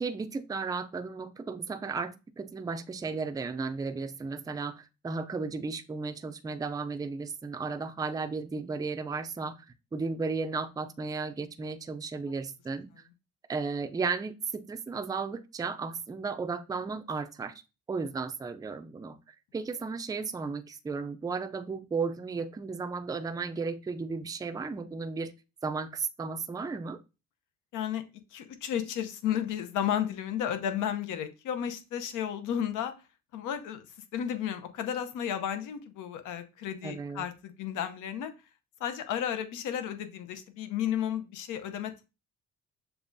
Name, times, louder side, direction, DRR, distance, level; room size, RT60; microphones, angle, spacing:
voice 1, 0.0-9.7 9.9-12.9 13.5-17.5 17.9-25.3 25.6-27.0 36.8-37.3, right 4 dB, 15° right, 9 dB, 0.4 m, -34 dB
voice 2, 27.7-28.0 28.3-32.9 33.3-33.9 34.1-38.3 38.8-42.0, left 9 dB, 85° left, 9 dB, 0.7 m, -33 dB
6.9 x 2.3 x 2.6 m, 0.28 s
cardioid pair, 90°, 30 cm